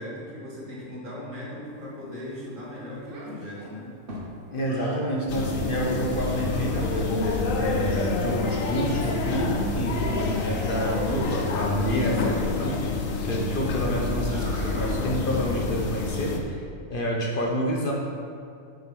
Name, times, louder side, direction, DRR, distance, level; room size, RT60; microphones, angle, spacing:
voice 1, 0.0-3.9, left 1 dB, 80° right, -7 dB, 2.4 m, -38 dB
Child speech kid speaking, 3.1-5.1 6.0-7.2 8.3-9.5 9.9-11.6 14.1-15.0, right 1 dB, 50° right, 1.2 m, -39 dB
voice 2, 4.5-12.9 13.2-16.6 16.9-17.9, equal, 50° left, -1 dB, 0.9 m, -28 dB
sound 1, 5.3-16.4, left 3 dB, 80° left, 1.2 m, -28 dB
6.5 x 4.9 x 6.0 m, 2.3 s
omnidirectional pair, 1.4 m